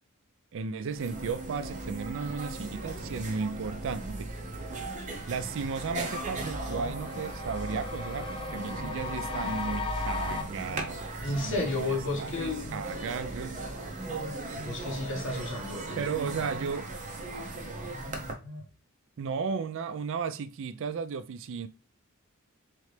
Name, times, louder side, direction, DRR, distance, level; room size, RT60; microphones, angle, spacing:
voice 1, 0.5-4.4 5.3-13.6 16.0-16.9 19.2-21.7, right 5 dB, 60° right, 0.4 m, -35 dB
sound 1, 0.9-18.3, right 2 dB, 35° right, 0.8 m, -38 dB
sound 2, 4.6-4.7 5.1-10.4, left 4 dB, 25° left, 0.7 m, -38 dB
Telephone, 6.4-7.1 8.3-9.0 10.2-11.0 12.2-12.9 14.1-14.9 16.1-16.8 18.0-18.7, left 1 dB, 10° left, 1.0 m, -45 dB
voice 2, 11.2-12.7 14.6-16.0, left 2 dB, 60° left, 1.4 m, -32 dB
3.8 x 3.2 x 3.2 m
head